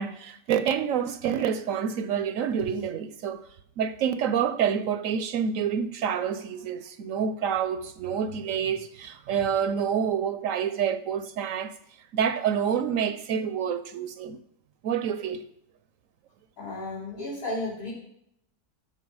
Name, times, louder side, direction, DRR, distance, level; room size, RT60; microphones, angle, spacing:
voice 1, 0.0-3.4 3.8-11.7 12.1-14.4 14.8-15.4, right 8 dB, 70° right, 0.9 m, -27 dB
voice 2, 16.6-17.9, left 2 dB, 65° left, 4.8 m, -33 dB
12.5 x 5.5 x 4.8 m
omnidirectional pair, 1.5 m